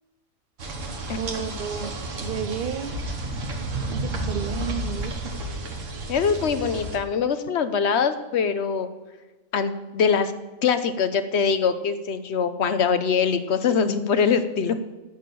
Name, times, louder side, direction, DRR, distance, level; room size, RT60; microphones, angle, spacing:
sound 1, 0.6-7.0, right 1 dB, 70° right, 1.6 m, -31 dB
voice 1, 1.2-2.9 3.9-5.3, right 8 dB, 55° right, 0.7 m, -32 dB
voice 2, 6.1-8.9 9.5-10.3 10.6-14.8, left 6 dB, 60° left, 1.0 m, -23 dB
9.3 x 6.5 x 8.4 m
omnidirectional pair, 1.4 m